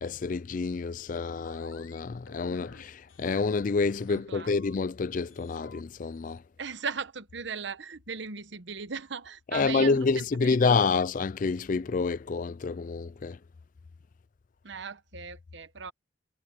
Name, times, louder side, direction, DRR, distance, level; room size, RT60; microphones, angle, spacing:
voice 1, 0.0-6.4 9.5-13.4, left 4 dB, 40° left, 0.4 m, -28 dB
sound 1, 1.1-2.0 2.3-2.8 3.1-4.2 4.5-5.0 5.3-6.4, left 3 dB, 85° left, 4.1 m, -52 dB
voice 2, 4.1-4.5 6.6-10.7 14.6-15.9, right 5 dB, 60° right, 1.0 m, -38 dB
head